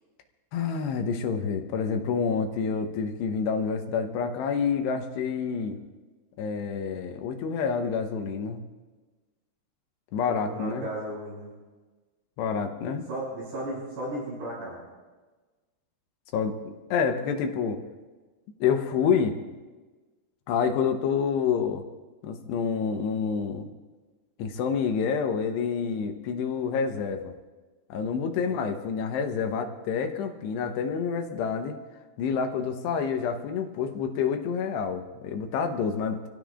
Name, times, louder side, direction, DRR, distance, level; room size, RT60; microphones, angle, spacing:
voice 1, 0.5-5.8 6.4-8.6 10.1-10.9 12.4-13.1 16.3-17.8 18.6-19.4 20.5-21.8 22.2-23.7 24.4-27.3 27.9-31.8 32.2-36.3, left 6 dB, 80° left, 5 dB, 3.1 m, -28 dB
voice 2, 10.2-11.5 13.1-14.8 28.4-28.7, right 1 dB, 85° right, -10 dB, 8.9 m, -35 dB
27.0 x 16.0 x 2.5 m, 1.3 s
omnidirectional pair, 4.8 m